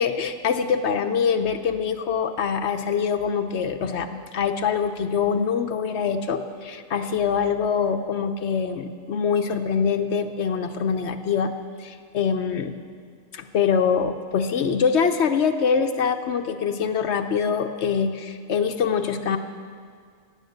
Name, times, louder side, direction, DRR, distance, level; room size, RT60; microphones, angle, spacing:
voice 1, 0.0-11.5 11.8-12.7 13.3-19.4, left 6 dB, 60° left, 7 dB, 0.9 m, -24 dB
17.5 x 9.4 x 6.5 m, 2.1 s
omnidirectional pair, 1.5 m